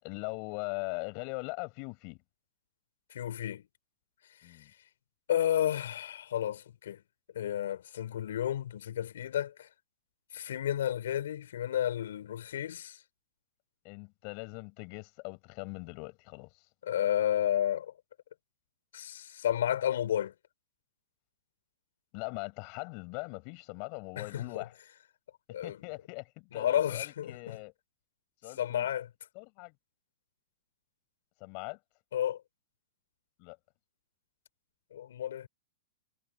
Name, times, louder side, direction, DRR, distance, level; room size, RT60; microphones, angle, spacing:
voice 1, 0.0-2.2 4.4-4.7 13.8-16.7 22.1-24.8 25.6-27.7 28.4-28.9 29.3-29.7 31.4-31.8 33.4-33.6, left 34 dB, 45° left, 5.5 m, -41 dB
voice 2, 3.1-3.6 5.3-7.0 7.3-9.7 10.3-13.0 16.8-17.9 18.9-20.3 24.2-24.6 25.5-25.8 26.5-27.6 28.6-29.1 32.1-32.4 34.9-35.5, left 10 dB, 75° left, 6.3 m, -31 dB
hypercardioid pair, 140°, 0 cm